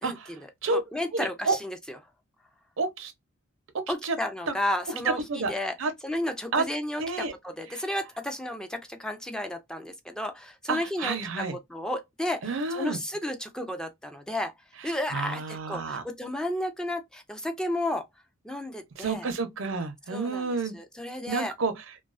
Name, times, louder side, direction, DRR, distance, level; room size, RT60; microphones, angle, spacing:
voice 1, 0.0-0.8 1.1-1.6 2.8-3.1 4.0-4.2 4.5-4.6 5.0-5.5 5.8-5.9 6.5-6.6 7.0-7.3 7.7-7.8 10.7-11.6 12.4-13.0 14.8-16.0 19.0-20.8 21.3-21.8, right 3 dB, 85° right, 0.6 m, -30 dB
voice 2, 0.7-1.8 3.9-5.7 6.0-14.5 14.8-18.1 18.4-19.3 20.1-20.5 20.7-21.5, left 1 dB, 5° left, 0.3 m, -32 dB
2.3 x 2.3 x 2.3 m
head